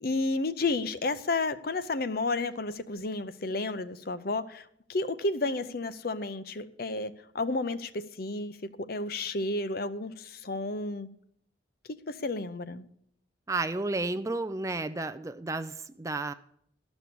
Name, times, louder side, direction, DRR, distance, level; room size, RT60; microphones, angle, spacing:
voice 1, 0.0-4.6 4.9-8.6 8.9-11.1 12.1-12.9, left 3 dB, 50° left, 12 dB, 0.6 m, -31 dB
voice 2, 13.5-16.3, right 2 dB, 15° right, 10 dB, 0.4 m, -32 dB
13.0 x 6.2 x 6.8 m, 0.68 s
head